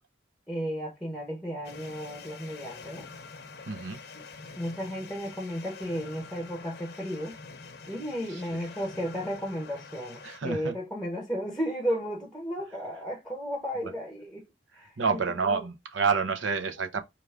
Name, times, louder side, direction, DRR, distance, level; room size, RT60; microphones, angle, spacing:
voice 1, 0.5-3.1 4.1-4.2 4.6-7.4 7.9-14.5 14.7-15.6, equal, ahead, 0.7 m, -34 dB
sound 1, 1.6-10.4, left 4 dB, 55° left, 0.7 m, -46 dB
voice 2, 3.7-4.0 8.3-8.6 10.2-10.7 13.8-13.9 14.8-17.0, right 5 dB, 85° right, 0.8 m, -29 dB
4.6 x 2.5 x 3.4 m
head